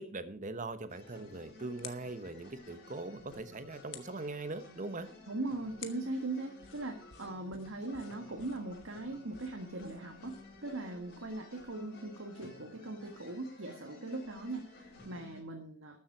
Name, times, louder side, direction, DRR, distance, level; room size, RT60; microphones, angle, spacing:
voice 1, 0.0-5.1, right 2 dB, 40° right, 11 dB, 1.1 m, -41 dB
sound 1, 0.7-10.7, left 9 dB, 75° left, 1.3 m, -56 dB
sound 2, 0.9-15.4, left 2 dB, 55° left, 6.4 m, -54 dB
voice 2, 5.3-16.0, right 2 dB, 85° right, 3 dB, 1.7 m, -40 dB
13.0 x 7.4 x 6.0 m, 0.43 s
head